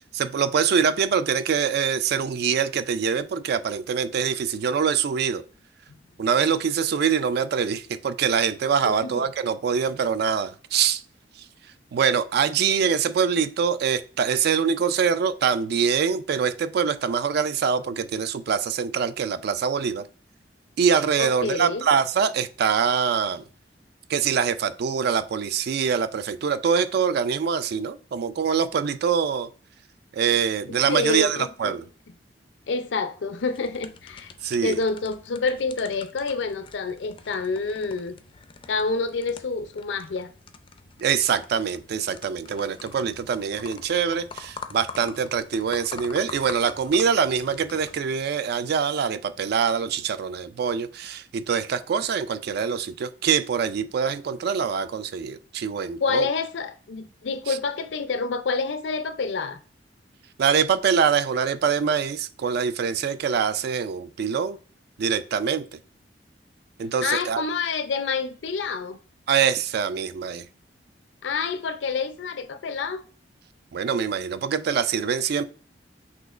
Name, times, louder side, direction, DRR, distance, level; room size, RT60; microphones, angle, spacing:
voice 1, 0.1-5.4 6.2-11.0 11.9-20.0 20.8-23.4 24.1-29.5 30.1-31.8 34.4-34.8 41.0-56.3 57.5-57.6 60.4-64.6 65.0-65.6 66.8-67.4 69.3-70.4 73.7-75.5, right 6 dB, 60° right, 0.3 m, -24 dB
voice 2, 8.8-9.3 21.2-21.9 30.9-31.7 32.7-34.3 34.6-38.2 38.7-40.3 56.0-59.6 67.0-69.0 71.2-73.0, left 4 dB, 85° left, 0.5 m, -28 dB
sound 1, 33.4-48.0, left 5 dB, 30° left, 0.4 m, -45 dB
6.0 x 2.9 x 2.4 m
head